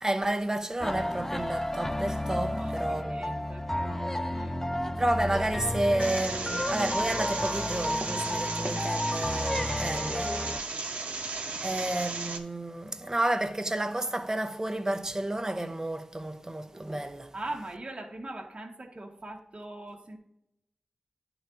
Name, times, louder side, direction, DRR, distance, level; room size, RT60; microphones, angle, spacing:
voice 1, 0.0-3.4 5.0-10.5 11.6-17.3, right 1 dB, 25° right, 0.8 m, -31 dB
sound 1, 0.8-10.6, left 1 dB, 15° left, 0.4 m, -32 dB
voice 2, 2.3-4.7 10.7-11.8 17.3-20.2, right 2 dB, 45° right, 1.0 m, -42 dB
sound 2, 6.0-12.4, right 3 dB, 85° right, 0.9 m, -35 dB
11.0 x 3.9 x 3.5 m
cardioid pair, 45°, 2 cm